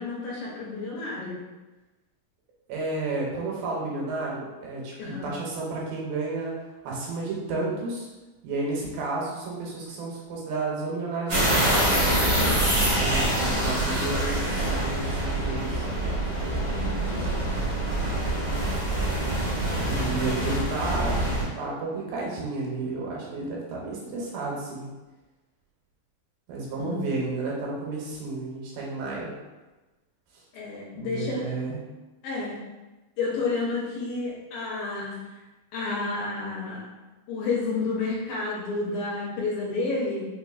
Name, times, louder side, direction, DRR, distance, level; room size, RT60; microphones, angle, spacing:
voice 1, 0.0-1.4 5.0-5.3 12.5-13.0 16.7-17.3 26.8-27.0 30.5-31.6 32.2-32.6 33.2-35.2 35.7-36.8 37.3-40.3, left 3 dB, 75° left, -5 dB, 2.3 m, -30 dB
voice 2, 2.7-8.1 8.4-11.8 12.8-15.8 19.8-21.2 21.6-24.9 26.5-29.3 30.9-31.8, right 3 dB, 80° right, -3 dB, 2.3 m, -32 dB
sound 1, 11.3-21.4, right 1 dB, 55° right, 1.1 m, -25 dB
5.4 x 2.4 x 2.4 m, 1.1 s
omnidirectional pair, 4.1 m